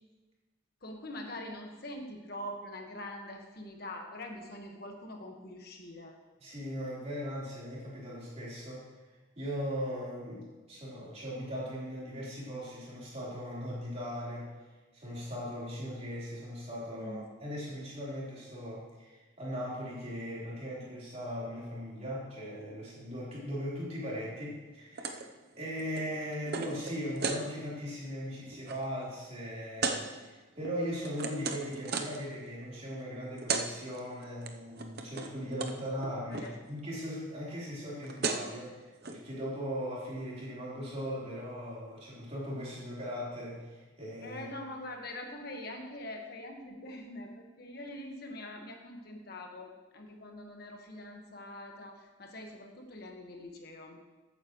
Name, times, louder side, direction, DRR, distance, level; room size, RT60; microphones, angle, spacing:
voice 1, 0.8-6.2 17.0-17.2 36.3-36.5 44.2-54.0, left 1 dB, 55° left, 2 dB, 1.5 m, -44 dB
voice 2, 6.4-8.9 9.4-25.3 25.6-44.4, equal, 35° right, -7 dB, 4.1 m, -39 dB
sound 1, 25.0-25.3 25.5-27.4 27.9-28.1 28.4-28.8 29.8-30.0 30.6-32.2 33.1-33.2 33.4-33.7 33.9-34.5 34.8-35.3 35.6-35.8 36.0-36.5 37.7-37.8 38.0-38.5 39.0-39.2, right 4 dB, 55° right, 0.8 m, -35 dB
14.5 x 9.0 x 3.1 m, 1.2 s
head